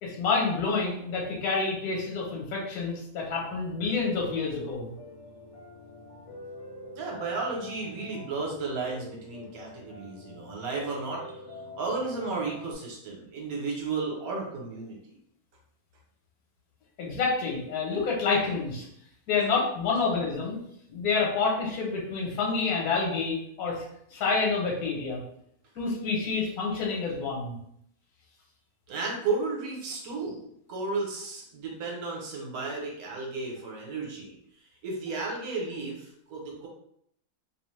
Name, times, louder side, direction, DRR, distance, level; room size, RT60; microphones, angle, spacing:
voice 1, 0.0-4.9 17.0-18.8 19.3-20.6 20.9-23.8 24.1-25.2 25.7-27.5, left 4 dB, 70° left, -2 dB, 1.2 m, -28 dB
Piano, 4.0-12.7, left 2 dB, 50° left, 0.4 m, -45 dB
voice 2, 7.0-15.0 28.9-34.3 34.8-36.7, right 3 dB, 65° right, -2 dB, 1.2 m, -33 dB
2.8 x 2.0 x 3.1 m, 0.72 s
omnidirectional pair, 1.7 m